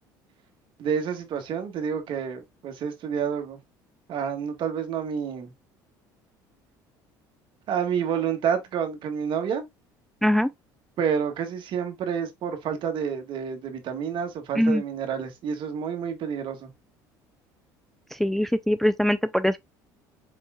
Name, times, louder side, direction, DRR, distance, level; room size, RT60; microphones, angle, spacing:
voice 1, 0.8-3.6 4.1-5.5 7.7-9.7 11.0-16.7, right 7 dB, 55° right, 1.5 m, -29 dB
voice 2, 10.2-10.5 14.6-14.8 18.1-19.6, equal, 5° left, 0.3 m, -22 dB
4.7 x 4.3 x 2.3 m
supercardioid pair, 80°, 10 cm